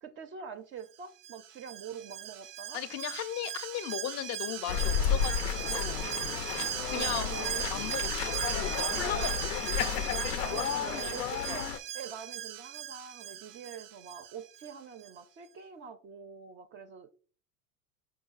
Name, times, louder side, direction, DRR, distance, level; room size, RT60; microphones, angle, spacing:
voice 1, 0.0-2.8 6.0-6.4 6.9-7.6 9.0-9.4 10.3-17.1, right 7 dB, 30° right, 0.4 m, -45 dB
Alarm, 1.2-14.7 15.0-15.1, right 11 dB, 85° right, 0.5 m, -38 dB
voice 2, 2.7-6.0 6.8-7.4 7.7-9.7, left 10 dB, 35° left, 0.5 m, -37 dB
sound 1, 4.7-11.8, left 8 dB, 90° left, 0.5 m, -32 dB
4.8 x 4.7 x 2.4 m
hypercardioid pair, 90°, 46 cm